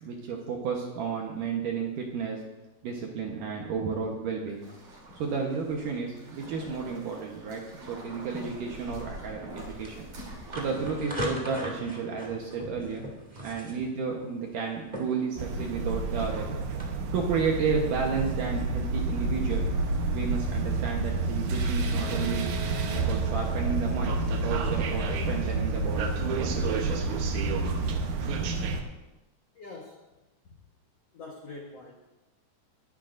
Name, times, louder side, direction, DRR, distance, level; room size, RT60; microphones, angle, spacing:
voice 1, 0.0-2.4 2.8-4.7 5.2-7.6 7.9-10.1 10.5-13.1 13.4-16.5 17.1-19.6 20.1-22.5 22.9-27.2, right 5 dB, 70° right, 0 dB, 2.1 m, -32 dB
sound 1, 3.9-11.0, right 1 dB, 50° right, 4.5 m, -45 dB
sound 2, 9.0-16.9, equal, 30° right, 0.7 m, -40 dB
sound 3, 15.4-28.8, right 3 dB, 85° right, 1.6 m, -29 dB
voice 2, 29.5-30.0 30.4-30.6 31.1-32.2, left 3 dB, 90° left, -1 dB, 1.3 m, -46 dB
22.0 x 10.5 x 2.6 m, 1.0 s
omnidirectional pair, 5.0 m